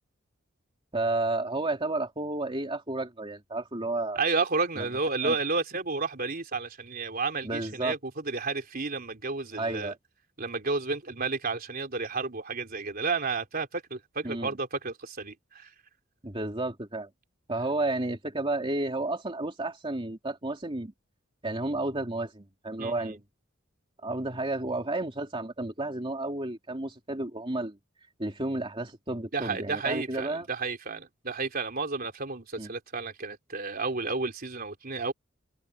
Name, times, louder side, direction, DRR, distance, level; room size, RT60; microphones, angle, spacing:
voice 1, 0.9-4.2 4.8-4.9 5.2-5.3 7.4-7.9 9.6-9.9 14.2-14.5 16.2-17.1 17.5-20.9 21.4-23.2 24.0-27.8 28.2-30.5 32.6-32.7, right 2 dB, 25° right, 2.9 m, -31 dB
voice 2, 4.2-9.9 10.4-15.7 22.8-23.2 29.3-35.1, right 4 dB, 50° right, 3.7 m, -31 dB
head